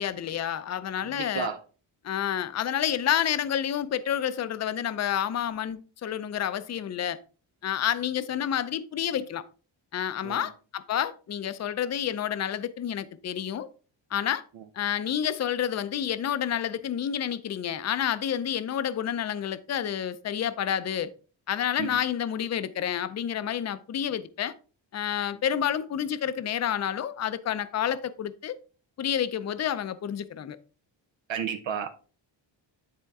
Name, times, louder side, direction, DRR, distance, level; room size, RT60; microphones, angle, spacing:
voice 1, 0.0-1.5 2.0-7.2 7.6-9.4 9.9-13.7 14.1-14.4 14.7-21.1 21.5-24.5 24.9-28.5 29.0-30.6, left 9 dB, 35° left, 0.5 m, -29 dB
voice 2, 1.0-1.6 10.2-10.4 21.8-21.9 31.3-31.9, right 8 dB, 75° right, 0.9 m, -32 dB
10.5 x 4.3 x 3.6 m
wide cardioid pair, 145°, 45 cm